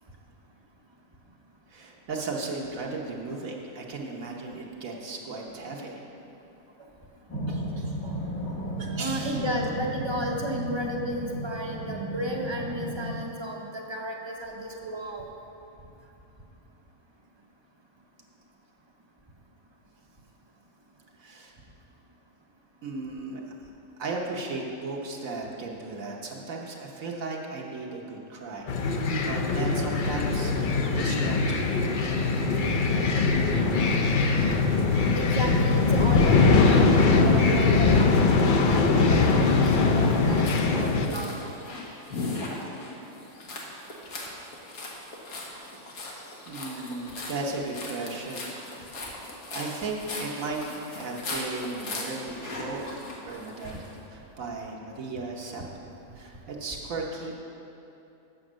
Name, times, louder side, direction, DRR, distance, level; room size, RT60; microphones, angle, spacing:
voice 1, 1.7-6.0 7.5-8.0 8.8-9.4 21.2-21.5 22.8-23.5 24.0-33.3 45.6-45.7 46.5-49.1 49.5-50.6 50.8-52.9 53.2-53.8 54.1-55.8 56.1-57.3, right 3 dB, 70° right, -1 dB, 1.3 m, -36 dB
sound 1, 7.3-13.1, right 1 dB, 70° left, 2.1 m, -34 dB
voice 2, 9.0-15.3 35.1-40.4 40.7-41.4 52.8-53.0, equal, 25° right, 0 dB, 0.6 m, -33 dB
sound 2, 28.7-41.1, left 4 dB, 50° left, 0.6 m, -22 dB
sound 3, 39.1-53.9, left 2 dB, 90° left, 1.7 m, -39 dB
7.8 x 7.0 x 6.2 m, 2.8 s
omnidirectional pair, 1.5 m